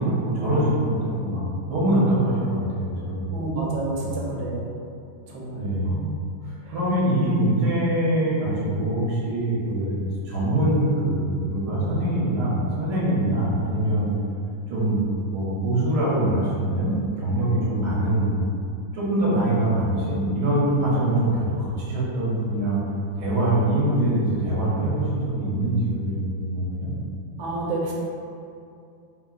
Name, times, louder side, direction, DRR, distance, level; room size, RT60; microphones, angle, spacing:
voice 1, 0.0-3.5 4.0-4.2 5.6-6.0 6.5-10.0 10.2-14.1 14.7-15.0 15.3-18.4 18.9-22.8 23.2-26.9, right 1 dB, 65° right, -8 dB, 1.1 m, -23 dB
voice 2, 3.3-4.7 5.3-6.0 27.4-27.9, right 2 dB, 80° right, -4 dB, 1.3 m, -29 dB
3.1 x 2.7 x 2.3 m, 2.5 s
omnidirectional pair, 2.1 m